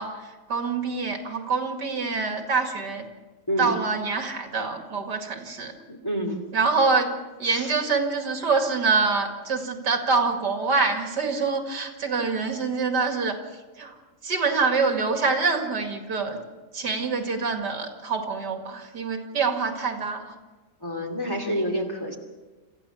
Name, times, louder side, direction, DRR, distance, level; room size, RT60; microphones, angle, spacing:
voice 1, 0.0-3.1 3.6-5.7 6.5-7.1 7.4-14.0 14.2-16.4 16.7-20.3, right 4 dB, 75° right, 4 dB, 2.9 m, -25 dB
voice 2, 5.9-6.4 7.5-7.7 20.8-22.2, equal, 15° left, 2 dB, 2.7 m, -28 dB
27.0 x 15.0 x 7.1 m, 1.2 s
omnidirectional pair, 1.8 m